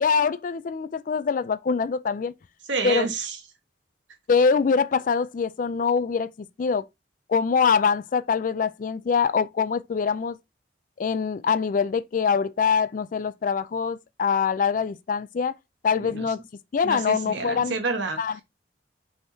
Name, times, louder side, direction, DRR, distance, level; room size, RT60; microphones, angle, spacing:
voice 1, 0.0-2.3 2.8-3.1 4.3-6.3 6.6-6.8 7.3-10.4 11.0-15.5 15.8-16.4 16.7-17.8 18.2-18.4, left 5 dB, 45° left, 0.3 m, -24 dB
voice 2, 2.7-3.4 16.0-16.3 16.8-18.2, right 4 dB, 80° right, 1.3 m, -29 dB
5.5 x 3.6 x 2.7 m
head